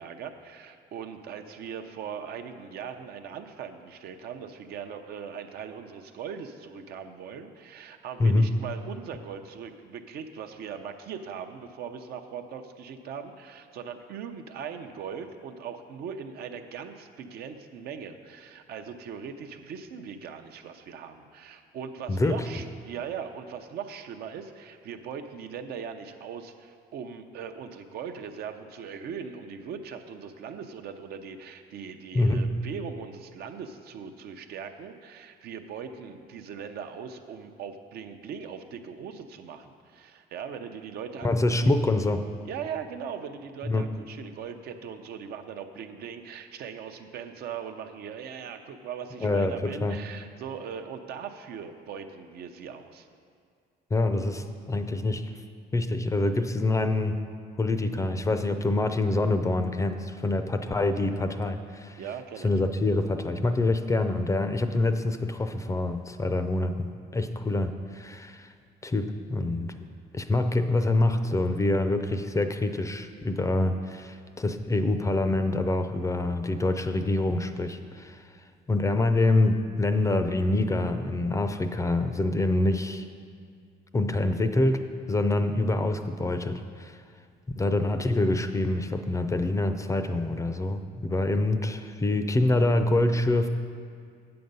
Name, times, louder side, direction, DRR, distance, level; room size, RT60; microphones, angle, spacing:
voice 1, 0.0-41.3 41.6-41.7 42.4-53.1 62.0-62.5, right 7 dB, 70° right, 6 dB, 0.7 m, -40 dB
voice 2, 32.1-32.5 41.2-42.2 43.6-43.8 49.2-50.0 53.9-55.3 55.7-57.2 57.6-62.0 62.4-68.5 68.8-69.8 70.1-78.3 78.7-83.0 83.9-84.8 85.1-87.0 87.6-93.5, left 2 dB, 20° left, 8 dB, 0.5 m, -26 dB
7.8 x 7.8 x 5.4 m, 2.2 s
cardioid pair, 110°, 17 cm